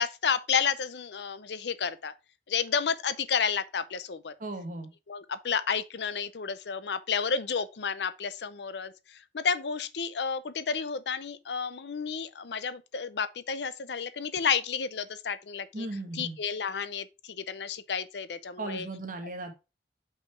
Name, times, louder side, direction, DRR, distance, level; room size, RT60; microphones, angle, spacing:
voice 1, 0.0-2.1 2.5-4.3 5.1-15.9 16.2-18.9, left 6 dB, 70° left, 0.6 m, -31 dB
voice 2, 4.4-4.9 15.7-16.4 18.6-19.6, right 2 dB, 50° right, 1.6 m, -36 dB
5.6 x 4.9 x 4.5 m
head